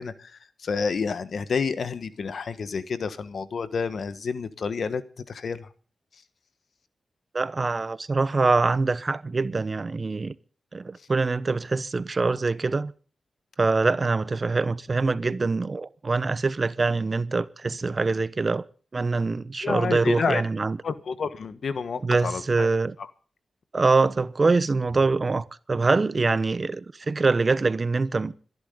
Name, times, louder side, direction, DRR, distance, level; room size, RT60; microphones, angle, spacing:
voice 1, 0.0-5.7 6.1-6.2 19.6-20.4 20.8-22.7 23.0-23.1, left 5 dB, 70° left, 1.3 m, -29 dB
voice 2, 7.3-10.4 10.7-12.9 13.6-18.6 18.9-20.8 22.0-22.9 23.7-28.3, right 3 dB, 45° right, 0.9 m, -24 dB
26.0 x 11.0 x 3.8 m
cardioid pair, 45°, 0 cm